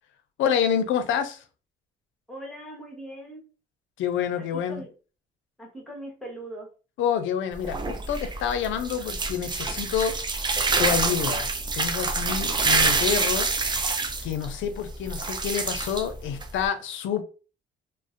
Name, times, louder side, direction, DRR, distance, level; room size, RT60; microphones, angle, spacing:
voice 1, 0.4-1.4 4.0-4.8 7.0-10.5 10.8-13.5 14.2-17.2, left 8 dB, 80° left, 0.5 m, -28 dB
voice 2, 2.3-3.4 4.4-4.9 5.6-6.7, right 1 dB, ahead, 1.0 m, -40 dB
sound 1, 7.5-16.7, right 3 dB, 25° right, 0.4 m, -27 dB
2.4 x 2.0 x 2.5 m
cardioid pair, 90°, 20 cm